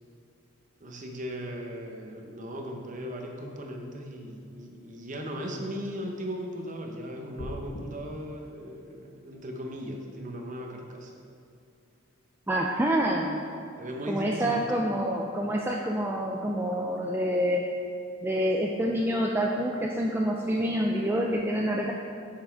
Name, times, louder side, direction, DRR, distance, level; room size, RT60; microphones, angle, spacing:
voice 1, 0.8-11.2 13.8-14.7, equal, 35° right, 1 dB, 0.8 m, -38 dB
sound 1, 7.4-7.8, left 1 dB, 65° left, 0.8 m, -38 dB
voice 2, 12.5-13.4 14.1-17.6 18.2-21.9, equal, 10° right, -1 dB, 0.3 m, -27 dB
6.6 x 5.7 x 4.5 m, 2.6 s
head